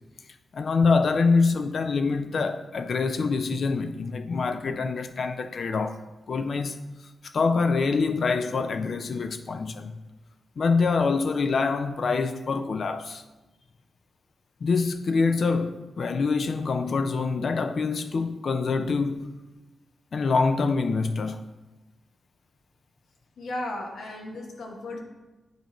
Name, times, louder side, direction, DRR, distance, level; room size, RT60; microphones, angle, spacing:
voice 1, 0.5-6.0 6.3-6.8 7.3-10.0 10.6-13.2 14.6-19.3 20.1-21.4, left 4 dB, 65° left, 0.4 m, -25 dB
voice 2, 23.4-25.0, left 1 dB, 85° left, 1.1 m, -35 dB
9.1 x 4.4 x 3.0 m
cardioid pair, 75°, 0 cm